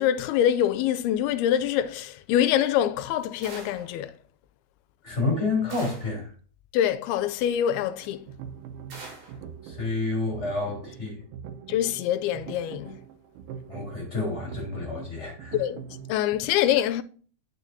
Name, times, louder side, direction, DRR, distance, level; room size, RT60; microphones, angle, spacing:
voice 1, 0.0-4.1 6.7-8.3 11.7-13.0 15.5-17.0, left 11 dB, 85° left, 2.4 m, -25 dB
sound 1, 3.4-4.0 5.7-6.2 8.9-9.4, right 3 dB, 55° right, 3.7 m, -43 dB
voice 2, 5.0-6.3 9.6-11.2 13.7-15.6, left 3 dB, 20° left, 2.8 m, -29 dB
sound 2, 8.0-16.1, right 8 dB, 85° right, 2.9 m, -43 dB
9.1 x 6.3 x 2.6 m
omnidirectional pair, 4.6 m